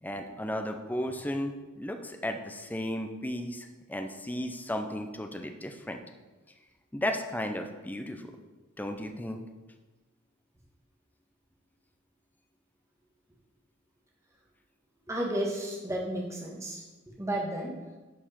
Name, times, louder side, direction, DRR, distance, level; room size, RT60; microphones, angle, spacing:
voice 1, 0.0-6.0 6.9-8.3 8.8-9.4, left 1 dB, 10° left, 5 dB, 0.6 m, -34 dB
voice 2, 15.1-16.8 17.2-17.8, right 1 dB, 15° right, -2 dB, 1.5 m, -32 dB
11.0 x 4.8 x 4.3 m, 1.2 s
head